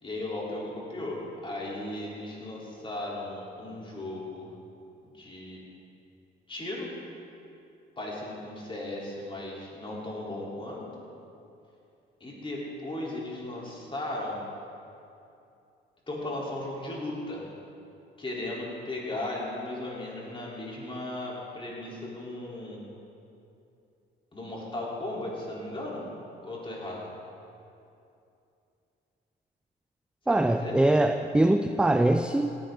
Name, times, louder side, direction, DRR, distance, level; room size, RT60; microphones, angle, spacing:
voice 1, 0.0-4.5 5.0-5.6 6.5-6.9 8.0-10.8 12.2-14.4 16.1-17.4 18.2-22.8 24.3-26.0 26.4-27.1 30.3-30.8, left 1 dB, 25° left, -4 dB, 3.8 m, -36 dB
voice 2, 30.3-32.5, right 1 dB, 5° right, 8 dB, 0.4 m, -23 dB
18.0 x 10.5 x 3.9 m, 2.7 s
cardioid pair, 90°, 20 cm